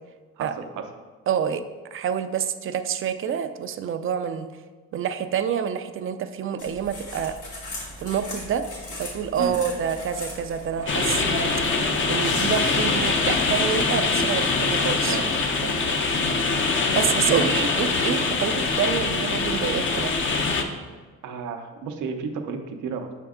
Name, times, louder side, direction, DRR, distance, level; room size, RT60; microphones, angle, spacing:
voice 1, 0.4-0.8 9.4-9.5 15.1-15.8 17.3-17.5 21.2-23.1, right 6 dB, 85° right, 6 dB, 0.7 m, -32 dB
voice 2, 1.3-1.6 1.9-4.5 4.9-7.3 8.0-8.6 9.0-11.5 12.1-15.2 16.9-20.1, right 8 dB, 45° right, 9 dB, 0.4 m, -27 dB
sound 1, 6.6-13.8, left 1 dB, 80° left, 1.8 m, -37 dB
sound 2, 10.9-20.6, left 4 dB, 40° left, 0.7 m, -23 dB
6.2 x 4.6 x 3.6 m, 1.4 s
cardioid pair, 90°, 30 cm